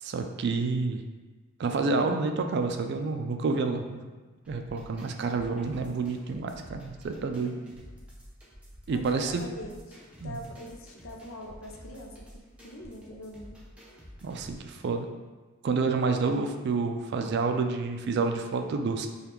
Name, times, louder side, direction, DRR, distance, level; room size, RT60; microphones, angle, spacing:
voice 1, 0.0-1.0 1.6-4.0 4.5-7.6 8.9-9.3 10.2-10.4 14.2-15.1 15.6-19.1, right 4 dB, 55° right, 6 dB, 0.3 m, -29 dB
sound 1, 4.4-14.7, equal, 5° right, 0.6 m, -50 dB
voice 2, 8.9-10.0 10.2-12.2 12.6-13.6, equal, 70° left, 2 dB, 0.5 m, -43 dB
5.0 x 2.3 x 3.0 m, 1.3 s
head